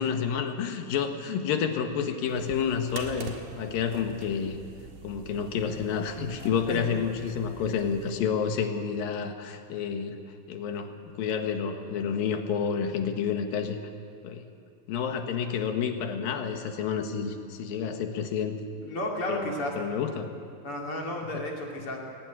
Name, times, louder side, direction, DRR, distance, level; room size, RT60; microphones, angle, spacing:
voice 1, 0.0-4.6 5.0-10.2 10.5-13.8 14.2-14.5 14.9-18.6 19.3-20.3 21.3-21.4, left 7 dB, 85° left, 6 dB, 3.2 m, -29 dB
sound 1, 2.3-8.2, right 5 dB, 85° right, 3.5 m, -44 dB
voice 2, 18.8-19.7 20.6-22.0, left 1 dB, 40° left, 0 dB, 3.5 m, -33 dB
20.5 x 17.5 x 9.8 m, 2.3 s
omnidirectional pair, 4.0 m